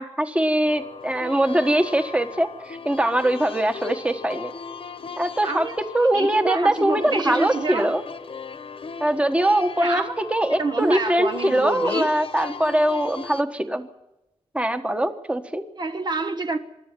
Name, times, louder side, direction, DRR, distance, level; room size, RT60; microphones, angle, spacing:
voice 1, 0.0-4.5 5.2-8.0 9.0-13.9 14.5-15.6, right 1 dB, 10° right, 1.3 m, -22 dB
sound 1, 0.6-13.4, left 5 dB, 55° left, 1.3 m, -37 dB
voice 2, 5.4-5.8 6.1-7.9 9.8-10.1 10.6-12.1 15.8-16.6, right 3 dB, 40° right, 1.0 m, -27 dB
25.0 x 12.0 x 9.3 m
wide cardioid pair, 140°, 11 cm